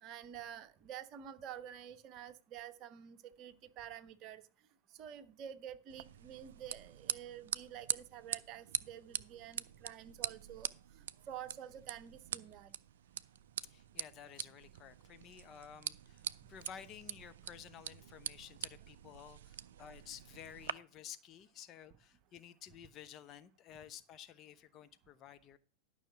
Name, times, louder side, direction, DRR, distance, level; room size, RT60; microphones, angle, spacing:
voice 1, 0.0-4.4 5.0-10.7 11.0-12.7, right 10 dB, 35° right, 10 dB, 1.0 m, -49 dB
sound 1, 5.9-20.7, right 10 dB, 60° right, 0.4 m, -44 dB
voice 2, 13.6-25.6, left 9 dB, 30° left, 10 dB, 0.7 m, -53 dB
12.0 x 5.7 x 5.9 m, 0.37 s
figure-of-eight pair, 90°, 0 cm